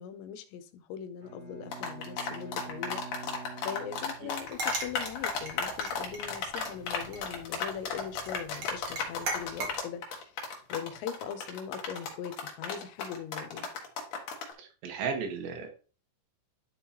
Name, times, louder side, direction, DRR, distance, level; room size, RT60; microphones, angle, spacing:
voice 1, 0.0-3.3 3.6-10.2 10.7-13.7, left 8 dB, 85° left, 3.0 m, -41 dB
Bowed string instrument, 1.2-4.8, right 4 dB, 25° right, 2.2 m, -46 dB
sound 1, 1.7-14.5, left 5 dB, 60° left, 2.2 m, -34 dB
sound 2, 4.4-9.7, right 3 dB, 60° right, 1.4 m, -40 dB
voice 2, 14.6-15.7, right 5 dB, 85° right, 3.7 m, -35 dB
11.0 x 5.5 x 2.9 m
omnidirectional pair, 5.0 m